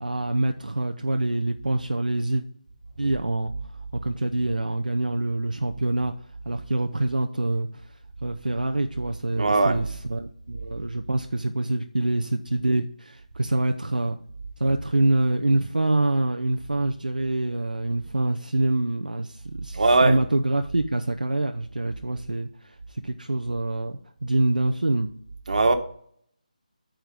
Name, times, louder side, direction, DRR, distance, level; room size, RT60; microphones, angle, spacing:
voice 1, 0.0-2.4 3.0-3.5 3.9-6.1 6.4-7.9 8.2-14.2 14.6-25.1, right 2 dB, 85° right, 5 dB, 0.6 m, -25 dB
voice 2, 9.4-9.8 19.7-20.2 25.5-25.7, right 3 dB, 60° right, 6 dB, 1.3 m, -19 dB
8.9 x 4.6 x 5.1 m, 0.62 s
figure-of-eight pair, 155°, 4 cm